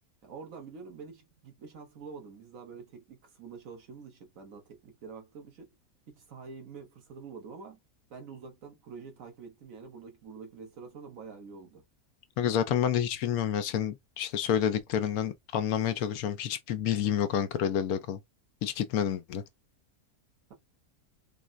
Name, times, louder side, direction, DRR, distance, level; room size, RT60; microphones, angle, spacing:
voice 1, 0.2-5.7 6.1-7.8 8.1-11.8, right 5 dB, 70° right, 1.4 m, -46 dB
voice 2, 12.4-18.2 18.6-19.4, left 9 dB, 85° left, 1.1 m, -29 dB
3.7 x 2.1 x 2.4 m
omnidirectional pair, 1.5 m